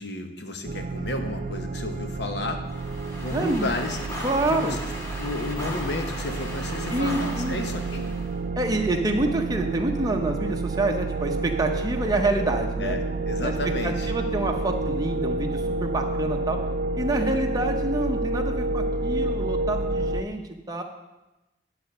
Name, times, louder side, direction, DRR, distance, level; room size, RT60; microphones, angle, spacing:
voice 1, 0.0-2.6 3.2-4.0 4.5-4.8 5.2-8.1 12.8-14.1, left 2 dB, 65° left, 5 dB, 1.0 m, -32 dB
sound 1, 0.6-20.2, right 2 dB, 45° right, 0.4 m, -29 dB
sound 2, 2.6-8.3, left 1 dB, 15° left, 1.3 m, -37 dB
voice 2, 3.3-3.7 4.2-4.8 6.9-7.6 8.6-13.0 13.4-13.5 13.8-16.6 17.0-20.4 20.7-20.8, right 2 dB, 20° right, 3 dB, 0.8 m, -27 dB
9.9 x 4.1 x 6.6 m, 1.0 s
head